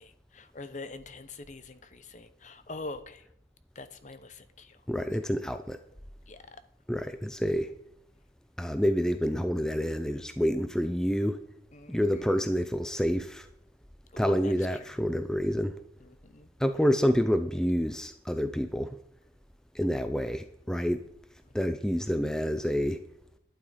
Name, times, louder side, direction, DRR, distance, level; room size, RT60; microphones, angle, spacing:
voice 1, 0.0-3.3 3.7-4.8 6.3-6.6 11.7-12.5 14.1-15.6 16.0-16.5 21.4-21.5, left 2 dB, 40° left, 12 dB, 0.8 m, -45 dB
voice 2, 4.9-5.8 6.9-7.7 8.6-11.4 11.9-13.5 14.2-15.8 16.6-19.0 19.7-21.0 21.5-23.0, equal, 5° left, 9 dB, 0.5 m, -28 dB
11.5 x 9.4 x 5.1 m, 0.74 s
head